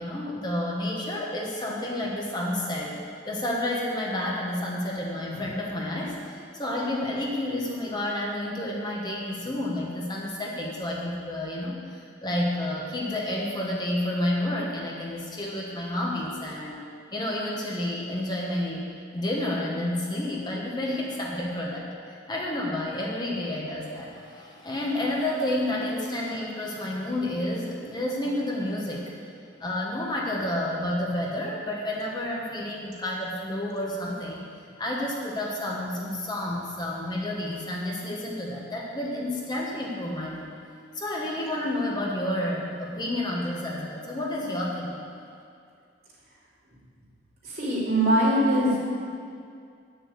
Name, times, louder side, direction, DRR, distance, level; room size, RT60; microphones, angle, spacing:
voice 1, 0.0-2.9 3.3-16.8 17.1-18.8 19.1-29.0 29.6-34.5 34.8-40.5 40.9-45.0, left 1 dB, 25° left, -3 dB, 1.3 m, -30 dB
voice 2, 47.4-48.8, right 1 dB, 55° right, -7 dB, 3.1 m, -22 dB
8.8 x 6.7 x 8.1 m, 2.4 s
head